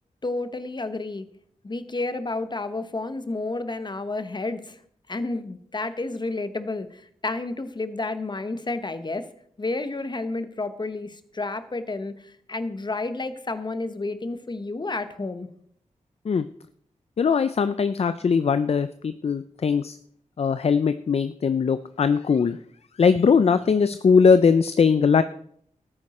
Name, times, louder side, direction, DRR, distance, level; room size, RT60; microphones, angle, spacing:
voice 1, 0.2-1.3 1.6-4.8 5.1-9.3 9.6-12.1 12.5-15.5, left 2 dB, 35° left, 11 dB, 1.1 m, -30 dB
voice 2, 17.2-20.0 20.4-22.6 23.0-25.2, left 5 dB, 50° left, 12 dB, 0.5 m, -20 dB
13.5 x 9.8 x 4.3 m, 0.66 s
wide cardioid pair, 85°, 13 cm